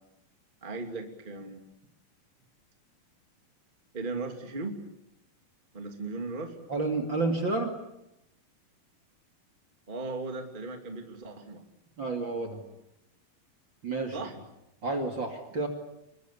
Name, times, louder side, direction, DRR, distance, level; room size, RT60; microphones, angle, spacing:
voice 1, 0.6-1.6 3.9-4.8 5.7-6.6 9.9-11.6 14.1-14.3, right 3 dB, 15° right, 4 dB, 2.5 m, -37 dB
voice 2, 6.7-7.7 12.0-12.6 13.8-14.2 14.8-15.7, right 3 dB, 35° right, 5 dB, 2.7 m, -30 dB
28.0 x 23.0 x 8.5 m, 0.86 s
omnidirectional pair, 4.2 m